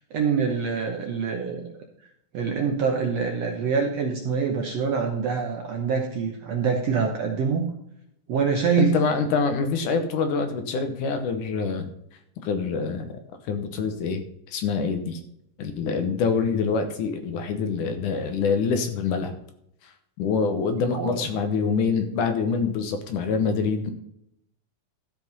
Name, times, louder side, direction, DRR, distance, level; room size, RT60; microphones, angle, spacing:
voice 1, 0.1-1.7 2.3-7.7 8.3-9.0 20.9-21.2, right 6 dB, 65° right, 2 dB, 1.7 m, -25 dB
voice 2, 8.8-11.9 12.4-13.1 13.5-14.2 14.5-15.2 15.6-19.3 19.8-19.9 20.2-23.9, left 5 dB, 70° left, 7 dB, 2.3 m, -25 dB
13.5 x 5.3 x 5.3 m, 0.75 s
omnidirectional pair, 4.2 m